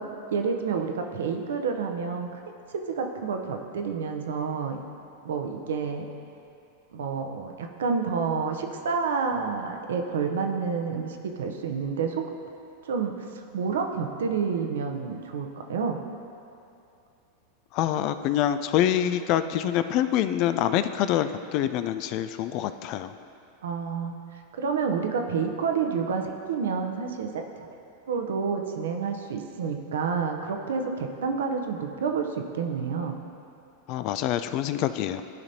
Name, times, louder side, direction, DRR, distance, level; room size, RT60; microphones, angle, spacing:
voice 1, 0.0-2.4 2.7-4.8 5.2-6.1 6.9-12.3 12.8-16.0 23.6-24.2 24.6-27.4 28.1-33.1, right 5 dB, 75° right, 4 dB, 0.7 m, -29 dB
voice 2, 17.7-23.1 33.9-35.2, left 11 dB, 50° left, 11 dB, 0.3 m, -26 dB
13.0 x 5.2 x 2.8 m, 2.6 s
hypercardioid pair, 100°, 0 cm